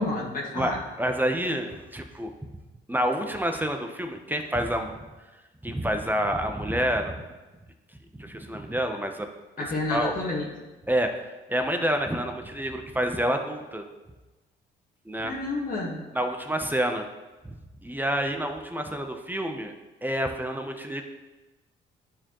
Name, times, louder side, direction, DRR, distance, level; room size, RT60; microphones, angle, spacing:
voice 1, 0.0-0.8 9.6-10.5 15.2-16.0, left 2 dB, 45° left, -3 dB, 1.5 m, -30 dB
voice 2, 0.5-2.3 2.9-4.9 5.6-7.2 8.1-9.3 9.6-9.7 9.9-10.2 10.9-11.2 11.5-13.8 15.1-15.3 16.1-17.1 17.4-17.5 17.8-19.7 20.0-21.0, equal, 10° right, 5 dB, 0.7 m, -28 dB
11.0 x 4.5 x 3.0 m, 1.1 s
cardioid pair, 90°, 20 cm